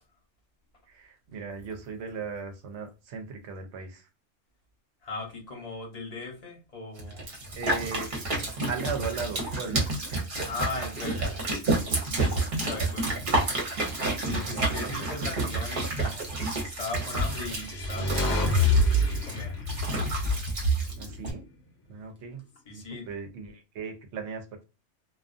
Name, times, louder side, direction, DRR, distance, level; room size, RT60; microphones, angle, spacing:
voice 1, 0.9-4.1 7.2-8.1 8.7-10.9 11.3-11.4 14.2-15.1 21.0-21.4 21.9-24.6, right 5 dB, 70° right, 6 dB, 0.9 m, -38 dB
voice 2, 5.0-7.2 10.5-11.4 12.1-13.2 14.2-16.3 16.6-20.4 20.8-20.9 22.7-23.1, left 3 dB, 35° left, 0 dB, 0.8 m, -39 dB
sound 1, 7.0-21.3, right 2 dB, 50° right, 0.9 m, -29 dB
sound 2, 17.1-21.4, left 3 dB, 65° left, 1.0 m, -28 dB
2.4 x 2.3 x 2.4 m, 0.30 s
omnidirectional pair, 1.3 m